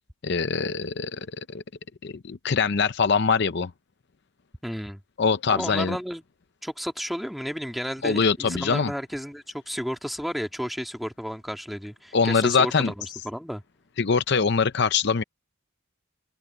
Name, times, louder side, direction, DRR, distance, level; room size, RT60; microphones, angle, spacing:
voice 1, 0.2-1.6 2.0-3.7 5.2-6.0 8.0-8.9 12.1-12.9 14.0-15.2, left 5 dB, 55° left, 0.6 m, -23 dB
voice 2, 4.6-5.0 5.5-6.2 6.6-13.6, equal, ahead, 1.8 m, -32 dB
head